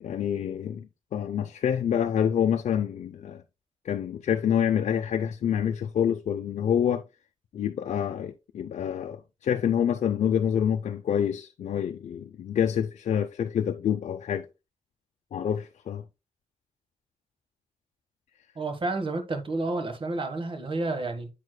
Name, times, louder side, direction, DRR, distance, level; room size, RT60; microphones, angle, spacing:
voice 1, 0.0-0.9 1.1-3.4 3.8-7.0 7.5-14.5 15.3-16.0, left 9 dB, 80° left, 0.5 m, -27 dB
voice 2, 18.5-21.3, right 2 dB, 45° right, 1.3 m, -30 dB
8.3 x 6.4 x 2.2 m
cardioid pair, 80°, 12 cm